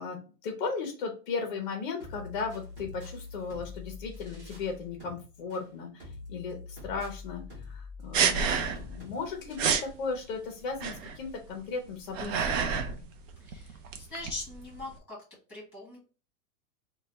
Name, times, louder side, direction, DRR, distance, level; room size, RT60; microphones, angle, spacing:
voice 1, 0.0-13.1, left 4 dB, 35° left, 3 dB, 0.5 m, -36 dB
trap beat, 2.0-10.0, left 3 dB, 30° right, 1.3 m, -45 dB
sound 1, 8.1-9.0 9.2-9.3 9.6-9.9 10.8-11.3 11.9-13.0 13.3-14.9, right 6 dB, 55° right, 0.6 m, -28 dB
voice 2, 13.4-15.2 15.5-16.0, left 2 dB, 5° right, -6 dB, 1.4 m, -41 dB
3.2 x 2.2 x 3.8 m, 0.36 s
supercardioid pair, 175°, 45 cm